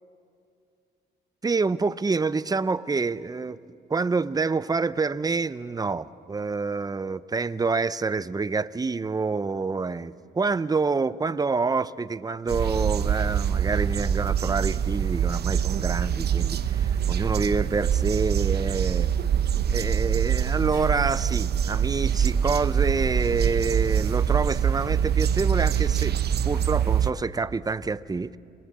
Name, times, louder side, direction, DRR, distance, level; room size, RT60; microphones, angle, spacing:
voice 1, 1.4-3.6 3.9-19.1 19.7-26.2 26.4-28.4, right 4 dB, 20° right, 15 dB, 0.7 m, -27 dB
sound 1, 12.5-27.1, right 8 dB, 55° right, 0.9 m, -24 dB
29.5 x 23.0 x 7.5 m, 2.4 s
cardioid pair, 90°, 20 cm